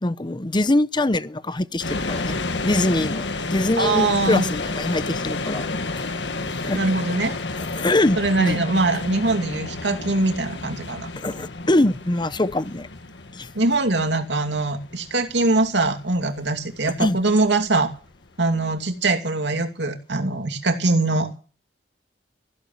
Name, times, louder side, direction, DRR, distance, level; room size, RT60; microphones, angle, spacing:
voice 1, 0.0-5.7 5.9-6.0 6.6-6.8 7.6-8.6 11.2-12.9 13.3-13.5 17.0-17.2, left 1 dB, 25° left, 0.8 m, -23 dB
sound 1, 1.8-18.8, left 3 dB, 85° left, 1.6 m, -31 dB
voice 2, 3.8-4.5 6.7-7.3 8.2-11.1 13.5-17.9 18.4-21.4, right 2 dB, 80° right, 2.6 m, -22 dB
15.5 x 11.5 x 7.3 m
head